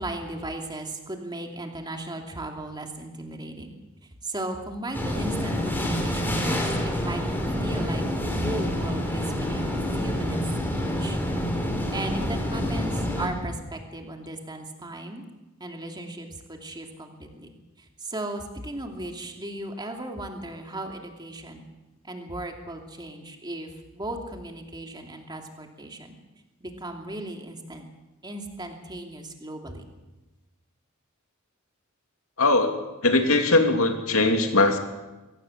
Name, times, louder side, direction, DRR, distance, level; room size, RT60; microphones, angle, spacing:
voice 1, 0.0-3.7 4.2-10.4 10.8-11.2 11.9-15.2 15.6-21.6 22.0-26.2 26.6-27.8 28.2-29.9, right 1 dB, 20° right, 3 dB, 2.8 m, -36 dB
sound 1, 4.9-13.3, left 1 dB, 10° left, 3.8 m, -27 dB
voice 2, 32.4-32.7 33.0-34.8, left 2 dB, 85° left, 5 dB, 2.7 m, -20 dB
23.5 x 17.5 x 7.4 m, 1.1 s
head